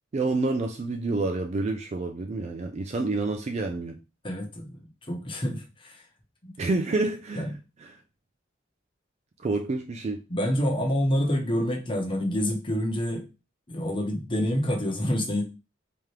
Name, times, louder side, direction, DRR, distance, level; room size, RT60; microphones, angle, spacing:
voice 1, 0.1-4.0 6.6-7.5 7.8-7.9 9.4-10.2, right 3 dB, 35° right, 0.4 m, -28 dB
voice 2, 4.2-6.1 6.4-6.6 7.4-7.5 10.3-13.2 13.7-15.4, equal, 25° left, 1.0 m, -27 dB
3.6 x 3.0 x 3.2 m
head